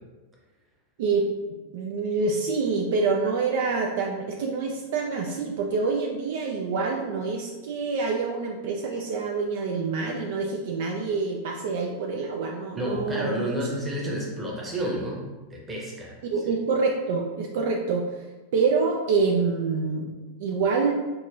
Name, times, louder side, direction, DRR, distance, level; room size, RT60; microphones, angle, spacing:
voice 1, 1.7-13.4 16.2-18.3 18.5-20.1 20.4-20.9, right 4 dB, 55° right, 0 dB, 0.3 m, -26 dB
voice 2, 12.8-16.2, equal, 20° right, -2 dB, 0.9 m, -30 dB
5.2 x 2.7 x 2.3 m, 1.2 s
figure-of-eight pair, 90°, 0 cm